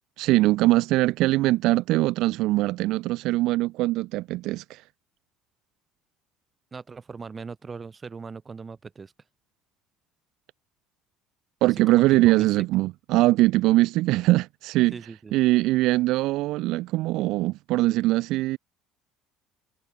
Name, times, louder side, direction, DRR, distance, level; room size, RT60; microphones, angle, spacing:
voice 1, 0.2-4.8 11.6-15.0 15.3-18.6, right 18 dB, 70° right, 0.4 m, -22 dB
voice 2, 6.7-9.1 11.6-12.7 14.9-15.3, right 5 dB, 30° right, 2.2 m, -39 dB
hypercardioid pair, 70°, 0 cm